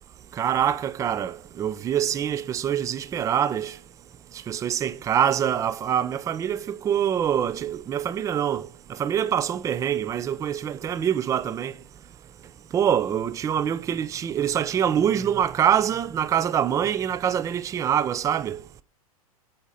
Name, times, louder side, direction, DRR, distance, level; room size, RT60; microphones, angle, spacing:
voice 1, 0.4-3.8 4.5-8.7 9.0-11.7 12.7-18.6, right 9 dB, 15° right, 0.4 m, -25 dB
8.1 x 4.3 x 3.8 m
hypercardioid pair, 100°, 19 cm